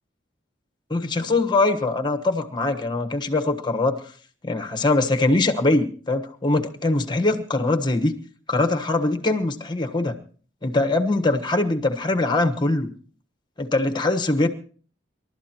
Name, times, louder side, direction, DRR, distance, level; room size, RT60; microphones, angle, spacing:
voice 1, 0.9-4.0 4.4-8.1 8.5-10.1 10.6-12.9 13.6-14.5, left 2 dB, 25° left, 7 dB, 1.2 m, -22 dB
28.0 x 12.5 x 3.0 m, 0.44 s
head